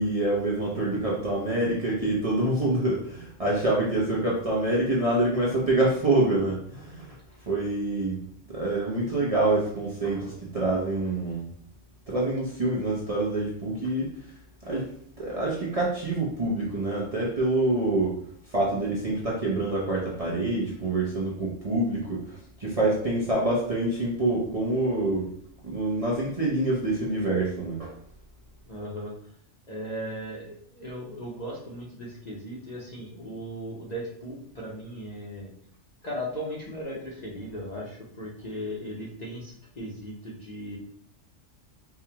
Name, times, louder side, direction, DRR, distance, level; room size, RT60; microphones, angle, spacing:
voice 1, 0.0-7.1 7.5-8.2 8.5-11.4 12.1-14.1 14.7-14.8 15.2-18.1 18.5-25.3 25.6-27.9, right 2 dB, 35° right, -5 dB, 0.6 m, -26 dB
voice 2, 28.7-29.1 29.7-35.5 36.0-40.8, equal, 40° left, -4 dB, 0.7 m, -37 dB
4.6 x 2.3 x 2.9 m, 0.63 s
omnidirectional pair, 1.3 m